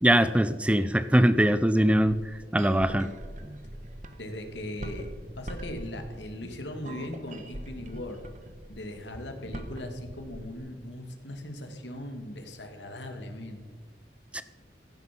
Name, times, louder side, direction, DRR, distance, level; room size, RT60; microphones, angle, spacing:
voice 1, 0.0-3.1 14.3-14.4, right 1 dB, 5° right, 13 dB, 0.5 m, -22 dB
sound 1, 1.7-10.5, right 1 dB, 45° right, 1.5 m, -42 dB
voice 2, 4.2-5.1 5.4-8.2 8.7-13.7, left 1 dB, 85° left, 5 dB, 2.6 m, -39 dB
16.5 x 16.0 x 5.5 m, 1.4 s
head